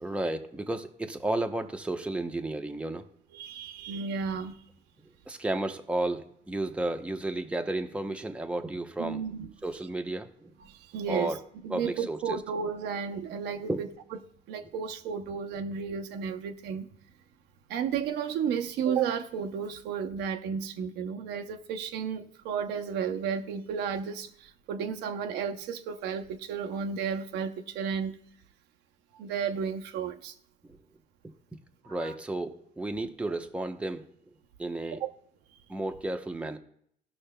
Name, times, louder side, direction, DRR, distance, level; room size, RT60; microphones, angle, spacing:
voice 1, 0.0-3.1 5.3-9.2 9.6-10.5 11.1-11.4 11.7-12.4 13.7-13.8 30.6-30.8 31.8-34.0 34.6-35.0 35.7-36.6, right 2 dB, 5° right, 0.7 m, -32 dB
voice 2, 3.3-4.6 9.0-9.5 10.7-11.3 11.6-13.9 14.5-16.9 17.7-28.2 29.2-30.3 31.8-32.1, right 7 dB, 85° right, 0.6 m, -33 dB
18.5 x 6.3 x 2.2 m
cardioid pair, 110°, 17 cm